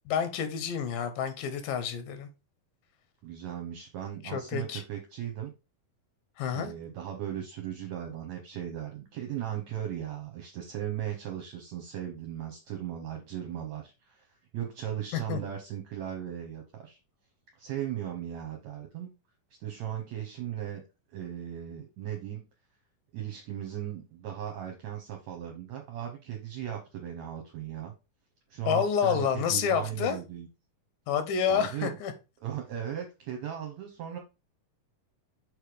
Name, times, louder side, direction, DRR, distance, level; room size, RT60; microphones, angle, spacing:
voice 1, 0.1-2.3 4.2-4.8 6.4-6.7 15.3-15.4 28.7-30.2 31.1-32.1, left 7 dB, 90° left, 2.7 m, -29 dB
voice 2, 3.2-5.5 6.5-14.3 14.5-17.0 17.6-19.1 19.6-20.8 21.1-22.5 23.1-27.9 28.5-30.5 31.5-31.9 32.4-34.2, right 10 dB, 70° right, 2.0 m, -37 dB
6.4 x 3.3 x 4.9 m
omnidirectional pair, 3.8 m